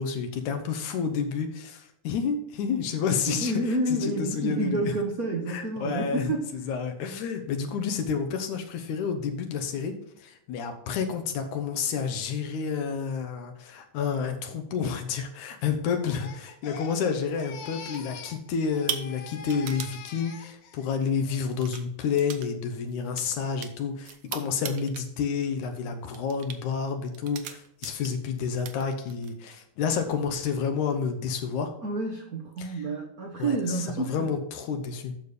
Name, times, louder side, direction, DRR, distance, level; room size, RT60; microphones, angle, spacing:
voice 1, 0.0-3.5 3.9-4.9 5.5-6.3 6.6-31.7 32.6-32.8 33.4-35.1, left 6 dB, 85° left, 6 dB, 2.5 m, -30 dB
voice 2, 3.3-6.7 31.8-34.3, right 2 dB, 85° right, 1 dB, 0.8 m, -29 dB
Crying sobbing, 15.9-18.4 18.7-20.9 21.3-21.7, left 6 dB, 65° left, 1.9 m, -44 dB
sound 1, 17.0-17.5 17.9-18.3 18.6-20.0 20.9-21.1 21.5-21.8 22.2-22.5 22.7-25.1 25.4-25.7 26.1-26.6 27.1-28.3 28.5-29.3, right 9 dB, 70° right, 1.6 m, -38 dB
9.2 x 6.7 x 4.2 m, 0.75 s
omnidirectional pair, 3.4 m